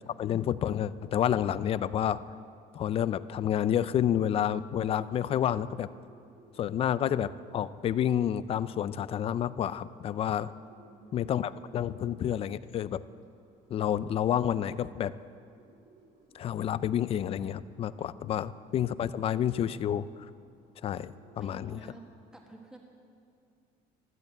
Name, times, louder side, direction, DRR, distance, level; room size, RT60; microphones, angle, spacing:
voice 1, 0.1-2.2 2.7-5.9 6.6-10.5 11.1-13.0 13.7-15.1 16.3-20.1 20.8-21.8, left 10 dB, 35° left, 16 dB, 0.4 m, -29 dB
Bird, 5.1-22.1, right 3 dB, 60° right, 3.9 m, -60 dB
voice 2, 10.7-11.3 18.1-18.4 21.4-22.1 22.3-22.8, right 2 dB, 5° right, 0 dB, 1.6 m, -51 dB
13.5 x 13.0 x 8.2 m, 2.4 s
cardioid pair, 150°, 16 cm